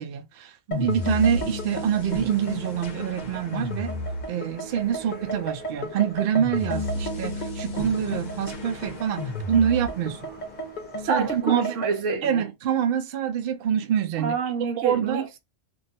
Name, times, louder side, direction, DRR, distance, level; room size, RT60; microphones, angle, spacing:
voice 1, 0.0-3.9 4.3-10.2 11.0-11.8 12.2-14.4 14.8-15.3, right 9 dB, 60° right, 0.7 m, -26 dB
sound 1, 0.7-12.0, left 1 dB, 45° left, 0.6 m, -32 dB
sound 2, 1.4-11.4, right 2 dB, 10° left, 0.9 m, -49 dB
voice 2, 11.1-12.5 14.2-15.4, right 5 dB, 85° right, 1.0 m, -27 dB
2.5 x 2.3 x 4.1 m
omnidirectional pair, 1.3 m